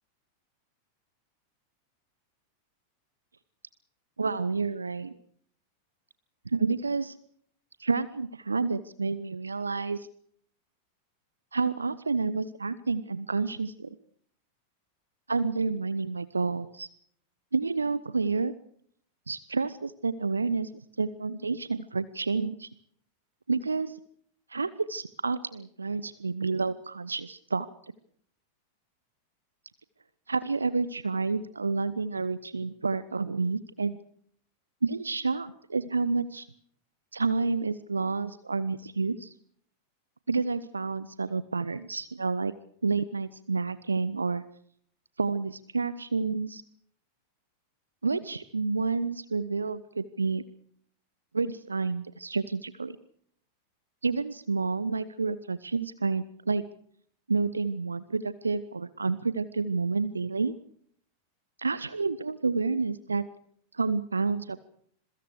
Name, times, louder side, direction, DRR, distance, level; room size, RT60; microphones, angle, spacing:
voice 1, 4.2-5.1 6.4-7.1 7.8-10.1 11.5-13.9 15.3-16.9 17.5-18.5 19.3-22.7 23.5-24.0 24.5-27.7 30.3-34.0 34.8-36.5 37.1-39.3 40.3-42.5 42.8-44.4 45.2-46.6 48.0-50.4 51.3-53.0 54.0-56.6 57.3-60.5 61.6-63.2 63.7-64.6, right 4 dB, 75° right, 17 dB, 1.0 m, -29 dB
26.5 x 23.0 x 4.8 m, 0.63 s
figure-of-eight pair, 90°, 0 cm